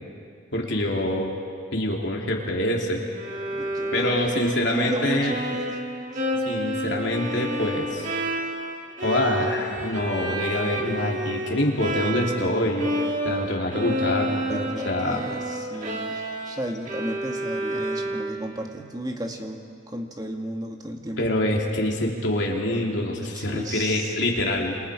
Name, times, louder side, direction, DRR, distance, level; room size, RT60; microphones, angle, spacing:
voice 1, 0.5-1.3 1.7-3.0 3.9-5.3 6.4-8.1 9.0-12.9 13.2-15.3 21.2-24.8, left 1 dB, 60° left, -1 dB, 3.1 m, -25 dB
Bowed string instrument, 3.2-12.5 12.8-18.6, right 1 dB, 40° right, 2.0 m, -30 dB
voice 2, 3.5-5.8 6.1-6.3 14.5-21.4 23.2-24.2, right 1 dB, 20° right, 3 dB, 1.6 m, -34 dB
27.5 x 27.0 x 5.0 m, 2.4 s
head